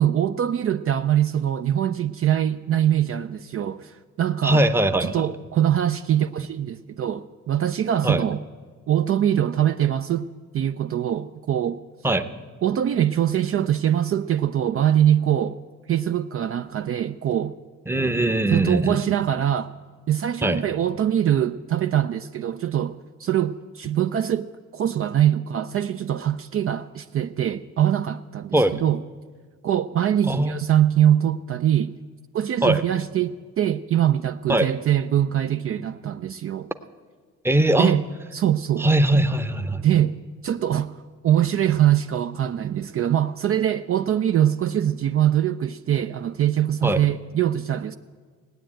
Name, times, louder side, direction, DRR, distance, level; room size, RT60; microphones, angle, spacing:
voice 1, 0.0-4.7 5.0-8.4 8.9-10.3 10.5-11.8 12.6-15.6 15.9-17.6 18.5-19.7 20.1-24.5 24.7-29.0 29.6-31.9 32.3-36.7 37.8-38.0 38.3-38.9 39.8-40.2 40.4-41.0 41.2-48.0, right 10 dB, 50° right, 0.5 m, -23 dB
voice 2, 4.4-5.3 8.0-8.2 12.0-12.3 17.9-19.0 20.4-20.7 28.5-28.7 30.3-30.6 32.6-32.8 34.5-34.7 37.4-37.9 38.8-39.9 46.8-47.0, right 1 dB, 10° right, 0.7 m, -20 dB
17.5 x 9.1 x 8.8 m
cardioid pair, 90°, 30 cm